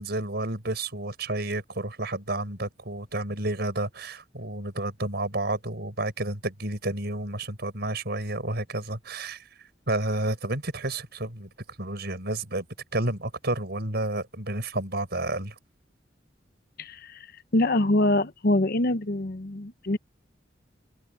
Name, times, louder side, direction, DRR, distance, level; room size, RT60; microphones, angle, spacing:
voice 1, 0.0-9.5 9.9-11.5 11.8-12.7 12.9-15.5, right 2 dB, 60° right, 6.3 m, -30 dB
voice 2, 16.8-17.1 17.5-20.0, left 1 dB, 55° left, 0.9 m, -24 dB
open air
head